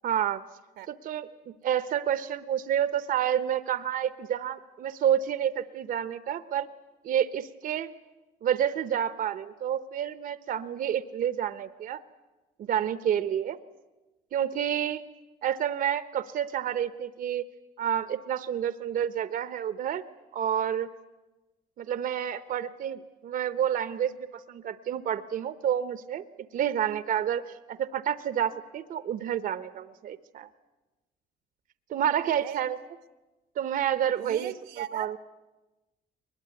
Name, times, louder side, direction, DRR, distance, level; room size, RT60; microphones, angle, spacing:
voice 1, 0.0-0.4 0.9-6.7 7.0-7.9 8.4-12.0 12.6-13.6 14.3-15.0 15.4-17.4 17.8-20.0 20.3-20.9 21.8-26.2 26.5-30.5 31.9-32.8 33.6-35.2, right 9 dB, 55° right, 0.8 m, -29 dB
voice 2, 32.2-32.7 34.1-35.2, right 11 dB, 85° right, 1.2 m, -39 dB
22.5 x 21.0 x 9.4 m
cardioid pair, 110°, 17 cm